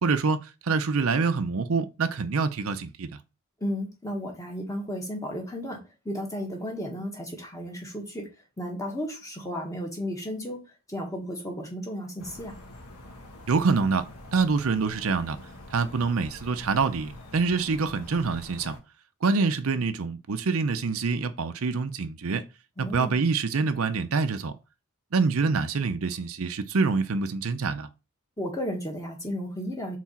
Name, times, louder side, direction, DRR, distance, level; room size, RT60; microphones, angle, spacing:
voice 1, 0.0-3.1 13.5-15.4 15.7-18.8 19.2-22.4 22.8-24.5 25.1-27.9, right 4 dB, 70° right, 0.6 m, -26 dB
voice 2, 3.6-8.3 8.6-10.6 10.9-12.6 22.8-23.2 28.4-30.0, equal, 15° left, 1.5 m, -34 dB
sound 1, 12.2-18.8, left 1 dB, 80° left, 1.6 m, -45 dB
4.6 x 4.1 x 5.7 m
head